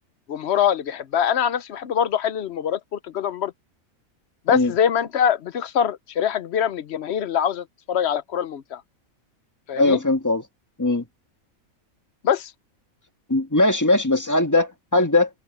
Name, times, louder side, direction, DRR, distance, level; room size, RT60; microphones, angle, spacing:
voice 1, 0.3-3.5 4.5-8.8 9.7-10.0 12.2-12.5, left 8 dB, 55° left, 0.9 m, -23 dB
voice 2, 9.7-10.4 10.8-11.0 13.3-15.3, left 2 dB, 15° left, 1.6 m, -20 dB
open air
omnidirectional pair, 1.4 m